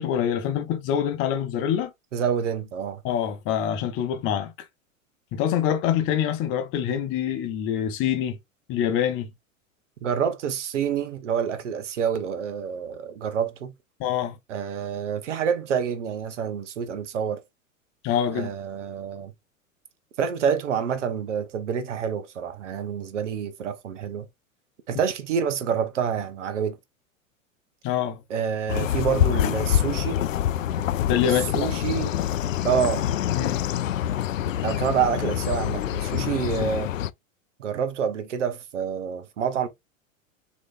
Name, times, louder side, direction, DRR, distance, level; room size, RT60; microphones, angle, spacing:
voice 1, 0.0-1.9 3.0-4.5 5.3-8.4 8.7-9.3 14.0-14.4 18.0-18.5 27.8-28.2 31.0-31.7 33.3-33.6, left 9 dB, 30° left, 0.9 m, -25 dB
voice 2, 2.1-3.0 10.0-13.7 14.5-17.4 18.3-19.3 20.2-24.3 24.9-26.8 28.3-30.2 31.3-32.1 32.6-33.1 34.6-36.9 37.6-39.7, right 7 dB, 60° right, 1.0 m, -27 dB
sound 1, 28.7-37.1, left 11 dB, 70° left, 0.5 m, -26 dB
6.2 x 3.1 x 2.5 m
figure-of-eight pair, 90°, 41 cm